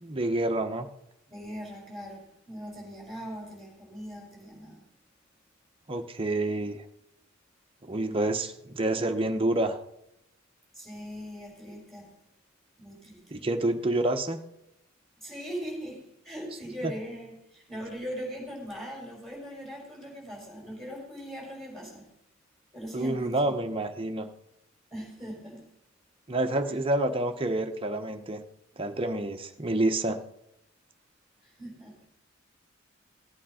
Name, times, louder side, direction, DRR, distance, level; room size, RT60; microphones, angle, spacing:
voice 1, 0.0-0.9 5.9-6.8 7.8-9.8 13.3-14.4 16.8-16.9 22.9-24.3 26.3-28.4 28.8-30.2, right 2 dB, 25° right, 4 dB, 1.0 m, -28 dB
voice 2, 1.3-4.8 10.7-12.1 12.8-13.4 15.2-22.1 22.7-23.5 24.9-25.6 26.6-26.7 31.4-32.0, equal, ahead, -2 dB, 5.1 m, -40 dB
15.0 x 8.7 x 5.0 m, 0.82 s
head